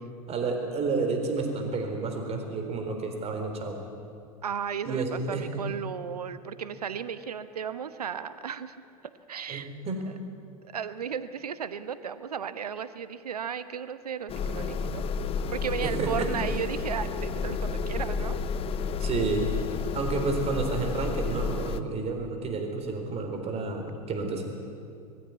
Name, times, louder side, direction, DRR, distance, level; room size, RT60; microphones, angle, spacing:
voice 1, 0.3-3.8 4.8-5.5 9.5-10.0 15.8-16.3 19.0-19.5 19.9-24.4, right 4 dB, 35° right, 4 dB, 4.2 m, -30 dB
voice 2, 4.4-8.7 9.3-9.7 10.7-15.1 15.5-18.4, right 7 dB, 85° right, 13 dB, 1.1 m, -35 dB
sound 1, 14.3-21.8, left 4 dB, 30° left, 0.8 m, -31 dB
21.0 x 15.5 x 9.7 m, 2.4 s
hypercardioid pair, 90°, 19 cm